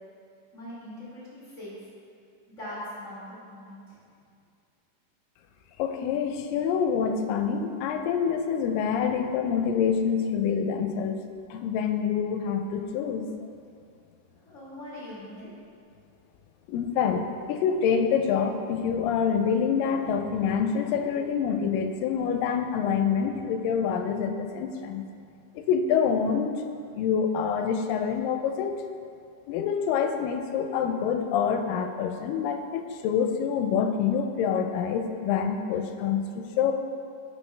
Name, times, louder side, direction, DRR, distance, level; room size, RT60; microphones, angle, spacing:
voice 1, 0.5-1.8 2.5-3.2 3.5-4.0 14.3-15.5, left 1 dB, 50° left, -9 dB, 0.8 m, -41 dB
voice 2, 5.8-11.2 11.5-13.3 16.7-25.0 25.7-26.6 26.9-28.8 29.5-36.7, left 7 dB, 80° left, 5 dB, 2.1 m, -26 dB
10.5 x 4.7 x 3.3 m, 2.3 s
omnidirectional pair, 4.1 m